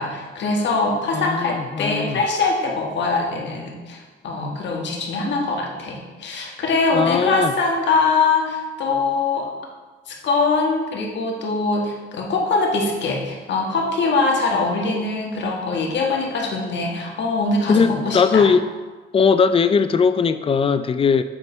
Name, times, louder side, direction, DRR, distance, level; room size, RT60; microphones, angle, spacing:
voice 1, 0.0-9.5 10.1-18.5, left 3 dB, 65° left, 0 dB, 1.4 m, -22 dB
voice 2, 1.1-2.2 6.9-7.5 17.7-18.6 19.1-21.2, left 5 dB, 30° left, 11 dB, 0.4 m, -19 dB
7.4 x 3.2 x 5.4 m, 1.3 s
cardioid pair, 90°, 20 cm